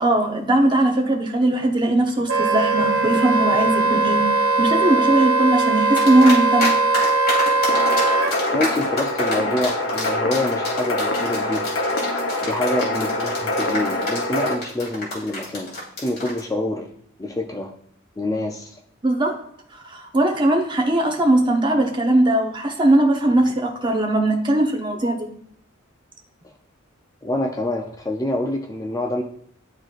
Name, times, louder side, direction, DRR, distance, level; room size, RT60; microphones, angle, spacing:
voice 1, 0.0-4.2 4.6-6.7 19.0-19.4 19.8-25.3, right 1 dB, 25° right, 2 dB, 0.8 m, -19 dB
Wind instrument woodwind instrument, 2.3-8.3, right 3 dB, 85° right, 0.6 m, -20 dB
sound 1, 6.0-6.7 6.9-16.4, left 1 dB, 50° left, 2.5 m, -27 dB
sound 2, 7.7-14.5, left 2 dB, 70° left, 0.9 m, -25 dB
voice 2, 8.5-11.7 12.4-15.7 16.0-16.9 17.2-17.7 18.2-18.8 27.2-29.2, left 1 dB, 15° left, 2 dB, 0.4 m, -26 dB
11.0 x 3.8 x 2.4 m, 0.63 s
head